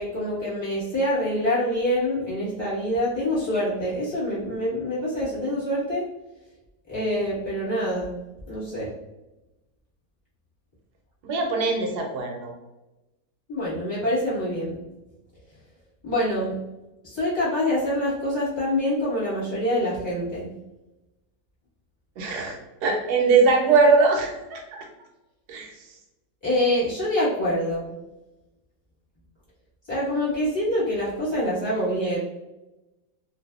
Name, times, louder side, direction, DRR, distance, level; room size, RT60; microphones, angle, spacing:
voice 1, 0.0-6.0 6.9-8.2 8.5-8.9 13.5-14.8 16.0-16.5 17.0-20.5 26.4-27.9 29.9-32.2, left 1 dB, 15° left, -9 dB, 1.2 m, -25 dB
voice 2, 11.2-12.5 22.2-24.9 25.5-25.8, right 4 dB, 70° right, 2 dB, 1.1 m, -21 dB
2.6 x 2.6 x 2.3 m, 1.0 s
omnidirectional pair, 1.9 m